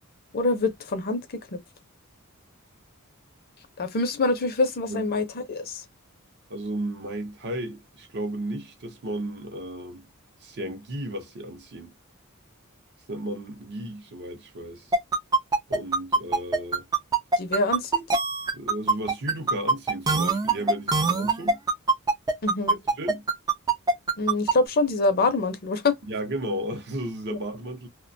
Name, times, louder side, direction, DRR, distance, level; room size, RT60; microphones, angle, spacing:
voice 1, 0.3-1.2 1.5-1.6 3.8-5.8 17.4-18.0 22.4-22.8 24.2-25.9, left 3 dB, 45° left, 0.5 m, -25 dB
voice 2, 6.5-10.0 10.4-11.9 13.1-14.9 15.7-16.8 18.5-21.6 23.0-23.3 26.0-27.9, right 1 dB, 50° right, 0.6 m, -34 dB
sound 1, 14.9-24.5, right 3 dB, 20° right, 0.3 m, -22 dB
2.3 x 2.1 x 2.6 m
head